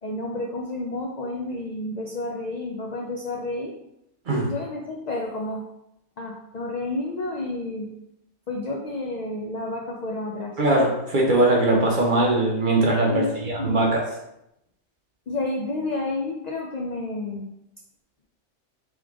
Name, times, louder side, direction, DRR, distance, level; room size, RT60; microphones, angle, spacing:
voice 1, 0.0-3.7 4.3-5.7 6.2-7.9 8.5-10.6 13.0-14.0 15.3-17.5, left 2 dB, 75° left, -1 dB, 0.3 m, -30 dB
voice 2, 10.6-14.1, right 2 dB, 45° right, -2 dB, 0.8 m, -21 dB
3.6 x 3.3 x 3.5 m, 0.84 s
omnidirectional pair, 1.4 m